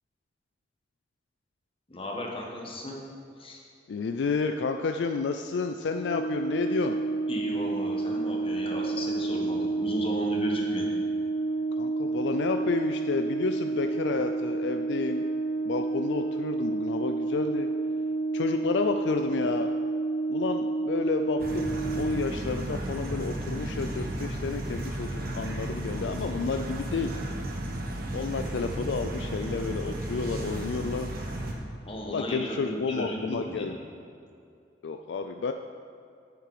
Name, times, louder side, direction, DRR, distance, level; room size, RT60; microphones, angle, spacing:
voice 1, 1.9-3.0 3.4-3.6 7.3-10.9 31.9-33.8, left 1 dB, 30° left, -1 dB, 1.4 m, -35 dB
voice 2, 3.9-7.0 11.8-15.2 15.7-17.7 18.3-19.7 20.3-27.1 28.1-31.1 32.1-33.8 34.8-35.5, left 4 dB, 70° left, 6 dB, 0.4 m, -31 dB
Brass instrument, 5.9-22.3, right 3 dB, 90° left, 2.3 m, -30 dB
sound 1, 21.4-31.5, right 1 dB, 55° right, 1.1 m, -34 dB
9.6 x 6.7 x 4.9 m, 2.5 s
head